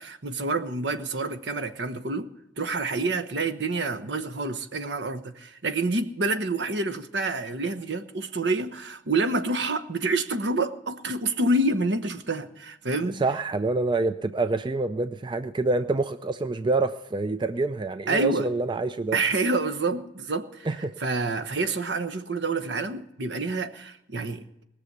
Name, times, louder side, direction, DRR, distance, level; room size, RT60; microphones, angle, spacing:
voice 1, 0.0-2.3 2.6-13.2 18.1-18.5 19.1-24.5, right 2 dB, 65° right, 1.1 m, -28 dB
voice 2, 13.2-19.2 20.7-20.9, right 3 dB, 25° right, 0.4 m, -26 dB
20.0 x 6.9 x 8.1 m
head